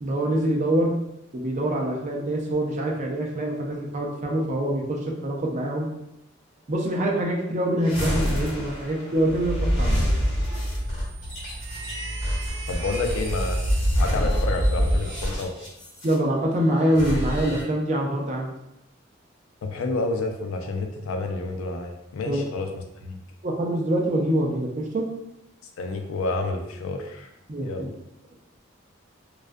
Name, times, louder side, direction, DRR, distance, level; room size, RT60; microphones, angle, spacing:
voice 1, 0.0-0.9 1.3-5.9 6.7-10.1 16.0-18.5 22.3-22.4 23.4-25.1 27.5-27.9, right 1 dB, 35° right, 0 dB, 0.4 m, -25 dB
sound 1, 7.8-16.1 16.8-17.6, equal, 65° left, 1.2 m, -26 dB
voice 2, 12.7-15.5 19.6-22.7 23.0-23.2 25.8-27.3 27.6-27.9, left 3 dB, 85° left, 4 dB, 0.4 m, -29 dB
2.4 x 2.1 x 2.5 m, 0.88 s
head